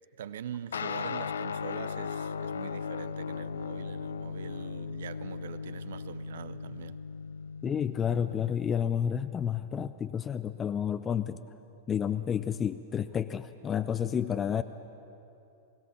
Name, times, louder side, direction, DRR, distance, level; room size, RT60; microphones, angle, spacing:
voice 1, 0.2-7.0, right 9 dB, 70° right, 0.7 m, -43 dB
sound 1, 0.7-8.5, left 6 dB, 80° left, 0.4 m, -37 dB
voice 2, 7.6-11.4 11.9-14.6, left 8 dB, 25° left, 0.6 m, -30 dB
21.0 x 17.0 x 7.3 m
hypercardioid pair, 100°, 0 cm